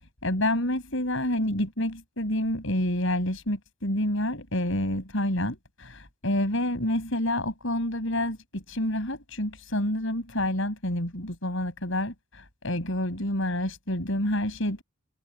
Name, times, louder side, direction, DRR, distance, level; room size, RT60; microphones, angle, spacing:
voice 1, 0.2-14.8, left 1 dB, 65° left, 6.6 m, -28 dB
head